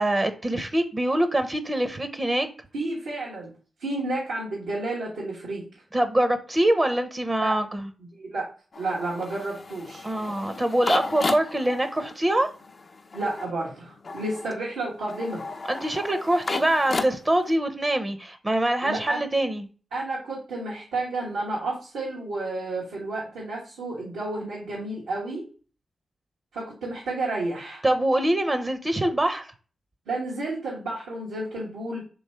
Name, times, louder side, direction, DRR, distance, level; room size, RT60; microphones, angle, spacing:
voice 1, 0.0-2.5 5.9-7.9 10.0-12.5 15.7-19.7 27.8-29.5, right 1 dB, 30° right, 9 dB, 0.7 m, -24 dB
voice 2, 2.7-3.5 3.8-5.6 7.4-7.6 8.2-8.5 8.8-10.1 13.1-15.4 18.8-19.2 19.9-25.4 26.5-27.8 30.1-32.0, right 2 dB, 90° right, -7 dB, 1.3 m, -31 dB
sound 1, 8.7-17.6, left 3 dB, 50° left, 0.5 m, -34 dB
3.1 x 3.1 x 4.3 m, 0.38 s
supercardioid pair, 40°, 0 cm